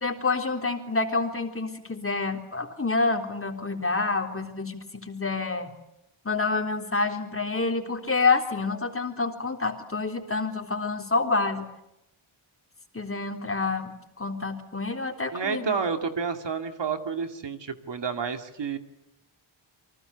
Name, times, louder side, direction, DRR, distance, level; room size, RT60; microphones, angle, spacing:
voice 1, 0.0-5.7 6.3-11.7 12.9-15.7, left 3 dB, 25° left, 4 dB, 3.7 m, -28 dB
voice 2, 15.3-18.8, right 5 dB, 60° right, 7 dB, 2.4 m, -30 dB
29.5 x 24.5 x 6.9 m, 0.85 s
wide cardioid pair, 125°, 49 cm